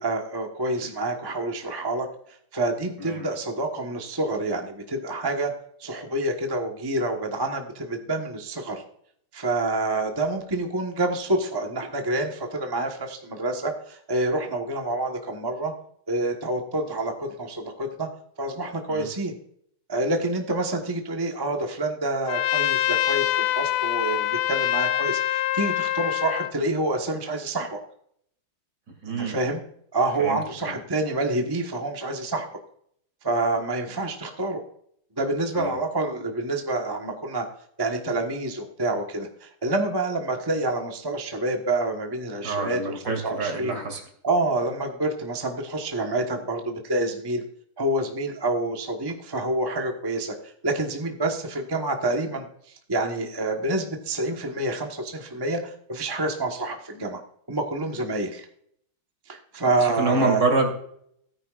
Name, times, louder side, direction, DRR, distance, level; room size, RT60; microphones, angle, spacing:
voice 1, 0.0-2.1 2.5-5.5 5.8-8.8 9.3-15.7 16.1-18.1 18.4-19.4 19.9-27.8 29.1-29.6 29.9-32.5 33.2-34.6 35.2-37.4 37.8-43.8 44.2-47.4 47.8-52.4 52.9-57.2 57.5-58.4 59.3-60.4, right 2 dB, 15° right, 2 dB, 0.9 m, -27 dB
Trumpet, 22.3-26.5, left 13 dB, 85° left, 1.5 m, -25 dB
voice 2, 29.0-29.4 30.2-30.8 35.5-35.8 42.4-44.1 59.8-60.7, right 3 dB, 55° right, 4 dB, 3.1 m, -27 dB
17.0 x 9.5 x 2.4 m, 0.67 s
omnidirectional pair, 2.3 m